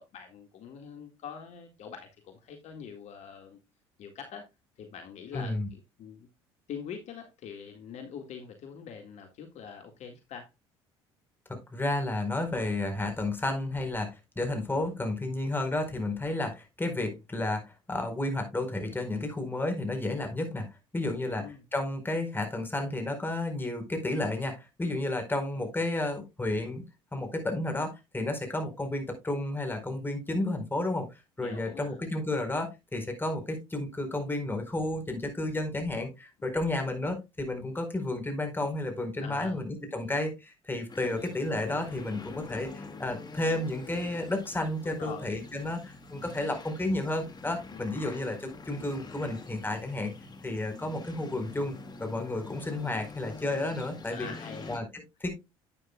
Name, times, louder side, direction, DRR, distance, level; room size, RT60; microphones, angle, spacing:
voice 1, 0.0-3.6 4.0-4.5 4.8-6.3 6.7-10.5 21.2-21.6 31.4-32.0 39.2-39.6 44.8-45.3 47.7-48.0 54.1-54.9, left 7 dB, 60° left, 1.9 m, -44 dB
voice 2, 5.3-5.7 11.5-20.7 20.9-21.5 21.7-26.8 27.1-31.1 31.4-50.1 50.4-51.7 52.0-54.3 54.7-55.3, left 2 dB, 15° left, 4.4 m, -32 dB
sound 1, 40.9-54.8, left 3 dB, 30° left, 2.1 m, -46 dB
11.0 x 9.2 x 2.3 m
hypercardioid pair, 65°, 13 cm